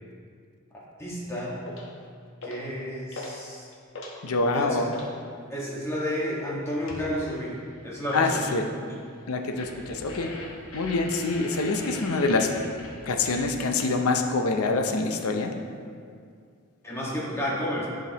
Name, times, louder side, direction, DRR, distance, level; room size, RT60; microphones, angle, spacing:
voice 1, 1.0-1.6 2.4-3.7 4.5-4.9 5.5-7.6 7.8-9.0 16.8-17.9, equal, 15° left, -6 dB, 1.5 m, -31 dB
sound 1, 1.7-1.9 2.4-2.7 3.1-3.4 3.7-5.1 6.9-7.1 9.6-14.0, left 1 dB, 65° left, 1.1 m, -40 dB
voice 2, 4.2-4.9 8.1-8.6 9.3-10.3 10.7-12.5 13.1-15.5, left 3 dB, 90° left, 4 dB, 0.7 m, -25 dB
11.0 x 5.1 x 2.9 m, 2.2 s
head